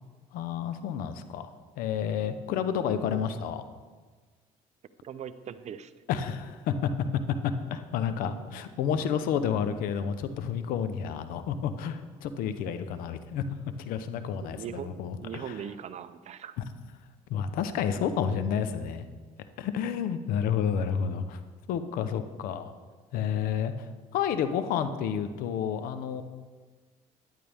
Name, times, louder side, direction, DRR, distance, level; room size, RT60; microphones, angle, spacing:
voice 1, 0.3-3.6 6.1-6.9 7.4-13.4 13.8-15.5 17.3-19.1 19.6-21.4 21.7-22.7 23.1-23.7 24.1-26.2, left 8 dB, 80° left, 10 dB, 0.8 m, -30 dB
voice 2, 5.0-5.9 14.6-15.0 15.2-16.5, right 8 dB, 50° right, 13 dB, 0.7 m, -39 dB
13.0 x 10.5 x 3.5 m, 1.4 s
supercardioid pair, 90°, 15 cm